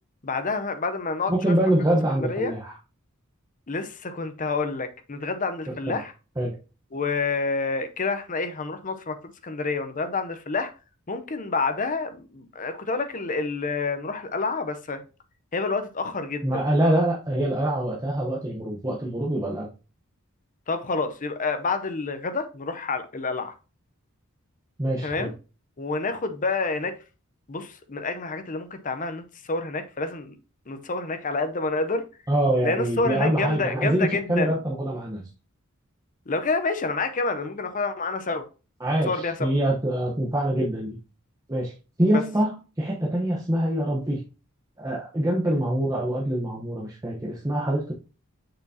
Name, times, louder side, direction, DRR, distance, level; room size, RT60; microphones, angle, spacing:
voice 1, 0.2-1.5 2.3-2.5 3.7-6.1 6.9-9.2 9.4-10.7 11.1-15.0 15.5-16.5 20.7-23.5 25.0-25.3 25.8-26.9 27.5-30.4 30.7-32.0 32.6-34.6 36.3-38.4 39.1-39.5 42.1-42.2, left 3 dB, 35° left, 0.7 m, -28 dB
voice 2, 1.3-2.7 5.8-6.0 6.4-6.6 16.4-19.7 24.8-25.3 32.3-35.2 38.8-41.0 41.5-41.7 42.0-44.2 44.8-47.9, right 1 dB, 15° right, 0.9 m, -25 dB
6.7 x 5.9 x 2.8 m
head